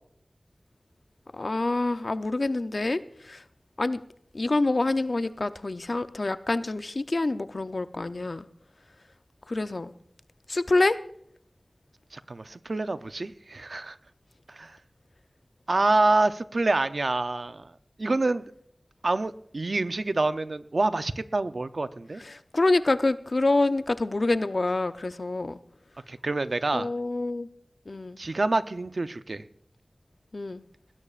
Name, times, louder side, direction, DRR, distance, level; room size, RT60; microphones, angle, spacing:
voice 1, 1.3-3.4 3.8-4.0 4.3-8.5 9.5-9.9 10.5-11.0 22.2-25.6 26.7-27.5 27.9-28.2 30.3-30.6, left 2 dB, 65° left, 11 dB, 0.6 m, -26 dB
voice 2, 12.1-14.0 14.5-14.8 15.7-18.5 19.0-22.2 26.1-26.9 28.2-29.4, right 2 dB, 75° right, 12 dB, 0.6 m, -27 dB
19.5 x 17.0 x 2.5 m, 0.70 s
wide cardioid pair, 45°, 0 cm